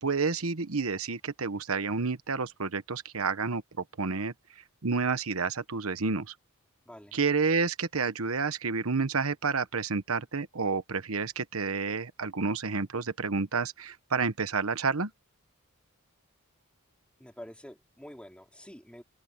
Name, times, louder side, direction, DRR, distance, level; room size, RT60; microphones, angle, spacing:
voice 1, 0.0-3.6 4.0-4.3 4.8-6.3 7.1-15.1, right 4 dB, 80° right, 1.1 m, -29 dB
voice 2, 6.9-7.2 17.2-19.0, equal, 5° left, 3.6 m, -47 dB
head